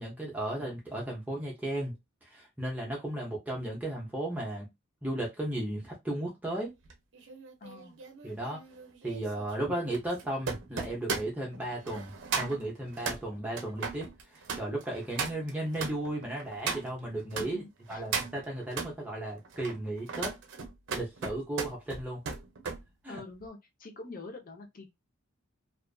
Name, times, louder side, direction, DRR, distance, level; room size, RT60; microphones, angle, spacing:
voice 1, 0.0-1.9 2.2-4.7 5.0-6.7 8.2-8.6 9.0-17.6 17.9-20.3 20.9-22.2 23.0-23.2, right 1 dB, 10° right, 0.6 m, -35 dB
sound 1, 6.8-17.5 17.9-18.9 19.4-22.8 23.2-23.5, right 5 dB, 60° right, 0.6 m, -37 dB
voice 2, 7.6-8.0 17.4-17.6 17.9-18.0 23.1-24.9, left 3 dB, 45° left, 0.7 m, -45 dB
2.4 x 2.4 x 2.3 m
head